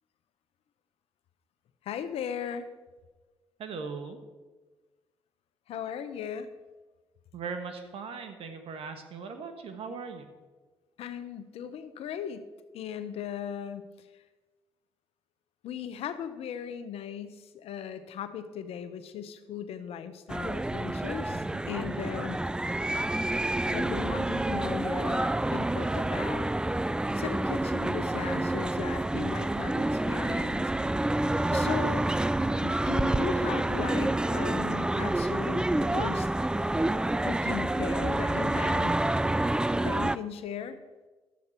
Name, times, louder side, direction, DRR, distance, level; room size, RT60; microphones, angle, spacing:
voice 1, 1.8-2.7 5.7-6.5 11.0-12.5 12.7-13.8 15.6-22.4 23.7-26.5 27.1-30.7 31.5-32.1 32.6-36.3 37.2-39.0 39.8-40.8, left 8 dB, 70° left, 11 dB, 0.8 m, -37 dB
voice 2, 3.6-4.2 7.3-10.3 21.3-21.6, right 5 dB, 65° right, 7 dB, 1.4 m, -39 dB
sound 1, 20.3-40.2, right 1 dB, 10° right, 0.3 m, -28 dB
11.5 x 7.9 x 4.4 m, 1.3 s
supercardioid pair, 60°, 10 cm